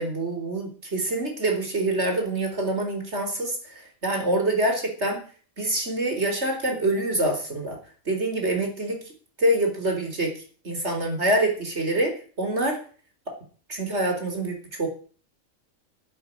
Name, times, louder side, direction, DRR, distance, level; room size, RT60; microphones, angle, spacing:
voice 1, 0.0-3.5 4.0-5.2 5.6-7.8 8.1-9.0 9.4-10.3 10.6-12.1 12.4-12.8 13.7-14.9, right 1 dB, 55° right, 3 dB, 4.5 m, -25 dB
11.5 x 9.3 x 8.8 m, 0.42 s
omnidirectional pair, 1.4 m